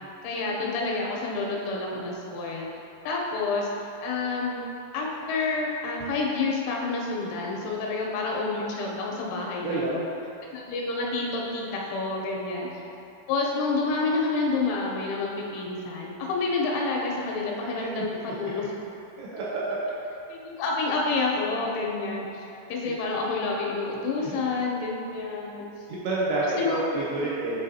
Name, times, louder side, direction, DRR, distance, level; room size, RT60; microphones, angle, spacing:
voice 1, 0.2-2.7 3.0-3.7 4.0-4.6 4.9-10.1 10.5-12.8 13.3-18.7 20.3-22.4 22.7-25.6 26.6-26.8, left 3 dB, 90° left, -2 dB, 3.3 m, -28 dB
voice 2, 9.6-10.0 17.8-18.3 19.2-19.8 22.8-23.0 25.9-27.6, right 2 dB, 80° right, -7 dB, 2.5 m, -29 dB
8.8 x 4.0 x 2.7 m, 2.8 s
omnidirectional pair, 5.4 m